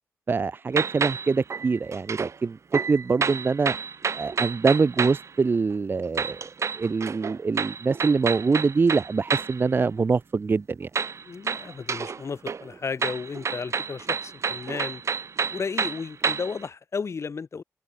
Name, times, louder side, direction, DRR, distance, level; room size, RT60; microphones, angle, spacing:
voice 1, 0.3-2.6 2.9-3.7 4.1-6.5 6.8-10.9, right 4 dB, 40° right, 0.5 m, -24 dB
sound 1, 0.7-2.4 2.7-5.3 6.2-9.6 11.0-12.2 12.5-16.6, right 5 dB, 55° right, 1.0 m, -29 dB
voice 2, 11.2-15.0 15.5-17.6, left 5 dB, 50° left, 1.3 m, -33 dB
open air
cardioid pair, 60°, 6 cm